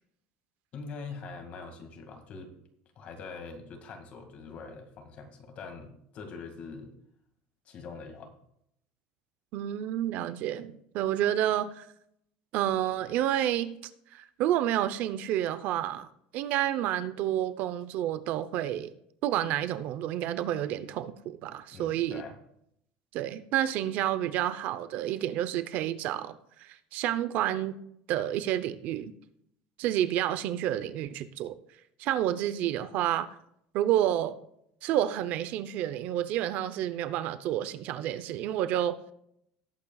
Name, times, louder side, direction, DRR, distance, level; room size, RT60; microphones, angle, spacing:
voice 1, 0.7-2.6 3.0-6.9 7.7-8.4 21.7-22.4, left 4 dB, 45° left, 2.1 m, -43 dB
voice 2, 9.5-11.9 12.5-13.8 14.1-16.1 16.3-18.9 19.2-22.2 23.1-27.8 28.1-29.1 29.8-31.5 32.0-33.3 33.7-34.3 34.8-39.0, right 12 dB, 60° right, 0.7 m, -29 dB
18.0 x 8.6 x 2.4 m
cardioid pair, 140°, 3 cm